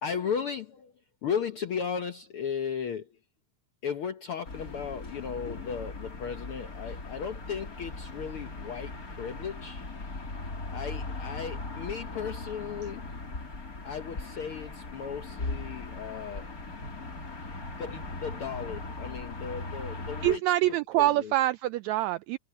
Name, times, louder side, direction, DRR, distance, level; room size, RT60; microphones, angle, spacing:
voice 1, 0.0-0.9 1.2-3.2 3.8-9.8 10.7-13.0 13.8-16.5 17.8-21.3, left 7 dB, 65° left, 1.4 m, -36 dB
sound 1, 4.4-20.4, left 3 dB, 25° left, 3.1 m, -39 dB
voice 2, 20.2-22.4, right 16 dB, 85° right, 1.6 m, -25 dB
omnidirectional pair, 3.7 m